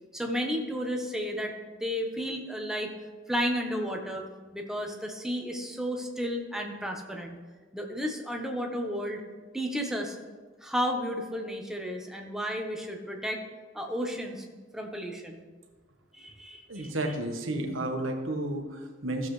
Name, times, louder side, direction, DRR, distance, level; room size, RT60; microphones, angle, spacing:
voice 1, 0.1-2.9 3.3-4.2 4.5-7.4 7.7-9.2 9.5-10.2 10.6-13.4 13.7-14.4 14.7-15.4 16.1-16.9, equal, 5° right, 1 dB, 1.0 m, -32 dB
voice 2, 16.7-19.3, right 1 dB, 90° right, 3 dB, 1.3 m, -32 dB
15.0 x 7.3 x 3.3 m, 1.4 s
head